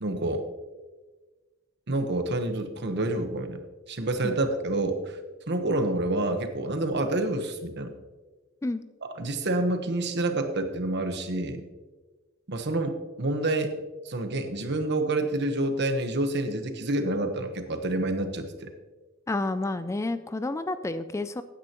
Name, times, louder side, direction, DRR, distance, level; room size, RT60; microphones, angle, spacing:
voice 1, 0.0-0.4 1.9-3.6 3.9-5.2 5.5-7.9 9.0-11.7 12.5-13.7 14.0-18.7, right 2 dB, 55° right, 7 dB, 1.2 m, -28 dB
voice 2, 19.3-21.4, left 2 dB, 15° left, 12 dB, 0.3 m, -30 dB
15.0 x 9.7 x 3.0 m, 1.3 s
head